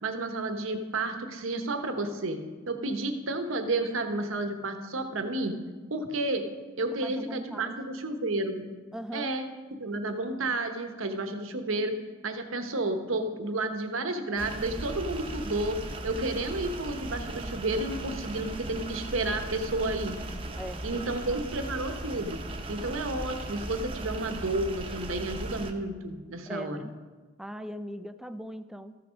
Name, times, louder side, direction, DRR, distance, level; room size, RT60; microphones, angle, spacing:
voice 1, 0.0-2.4 2.7-5.5 5.9-6.4 6.8-8.6 9.1-9.5 9.8-11.9 12.2-15.8 16.0-20.1 20.8-22.4 22.7-26.9, right 2 dB, 80° right, 7 dB, 1.0 m, -31 dB
voice 2, 7.0-7.8 8.9-9.3 20.5-21.4 26.5-26.9 27.4-29.0, equal, ahead, 10 dB, 0.3 m, -40 dB
sound 1, 14.4-25.7, right 1 dB, 25° right, 0.9 m, -37 dB
13.5 x 5.9 x 5.1 m, 1.3 s
head